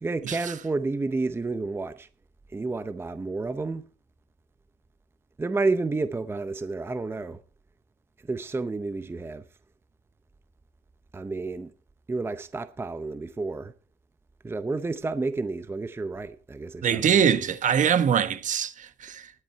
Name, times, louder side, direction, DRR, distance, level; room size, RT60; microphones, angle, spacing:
voice 1, 0.0-2.1 2.5-3.9 5.4-7.4 8.2-9.4 11.1-11.7 12.1-13.7 14.4-17.3, right 3 dB, 15° right, 0.6 m, -30 dB
voice 2, 16.8-19.3, right 8 dB, 50° right, 1.3 m, -23 dB
12.5 x 11.0 x 4.5 m
cardioid pair, 110°, 17 cm